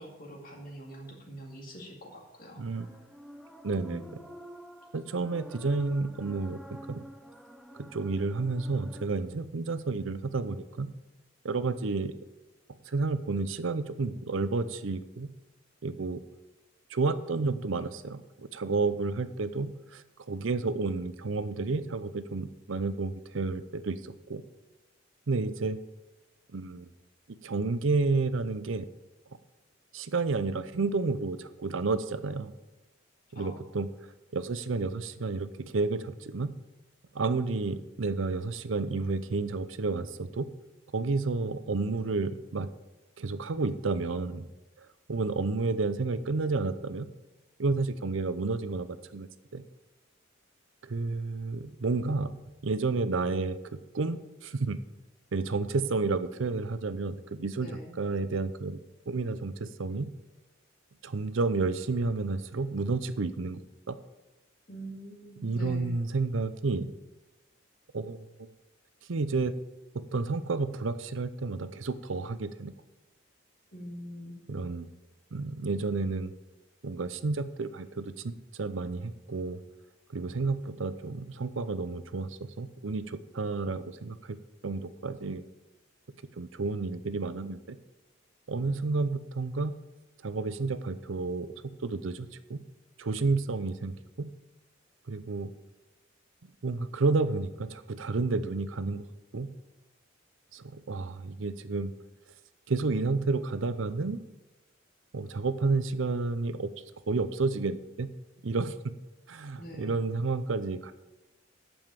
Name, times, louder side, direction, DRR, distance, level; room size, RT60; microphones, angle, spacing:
voice 1, 0.0-2.9 3.9-4.1 33.3-33.6 57.6-57.9 64.7-66.0 73.7-74.4 109.6-110.0, equal, 45° left, 0 dB, 2.4 m, -44 dB
voice 2, 2.6-2.9 3.6-4.0 4.9-7.0 7.7-10.9 11.4-12.1 12.9-15.3 15.8-16.2 16.9-24.4 25.3-25.8 26.5-26.9 27.4-28.9 29.9-32.5 33.3-33.9 34.3-36.5 37.1-40.5 40.9-42.7 43.2-44.5 45.1-47.1 47.6-49.6 50.8-54.8 55.3-57.7 58.0-58.8 59.1-60.1 61.0-63.6 63.9-64.0 65.4-66.9 67.9-68.5 69.1-69.5 69.9-72.7 74.5-74.9 75.3-76.3 76.8-79.6 80.1-84.4 84.6-85.4 86.4-87.8 88.5-89.7 90.2-91.5 91.8-92.6 93.0-94.3 95.1-95.5 96.4-99.1 99.3-99.5 100.5-101.9 102.7-104.2 105.1-106.7 107.1-108.1 108.4-108.9 109.3-110.9, right 3 dB, 70° right, 12 dB, 0.6 m, -31 dB
sound 1, 2.7-9.1, equal, ahead, 0.7 m, -49 dB
8.9 x 7.1 x 7.6 m, 1.0 s
head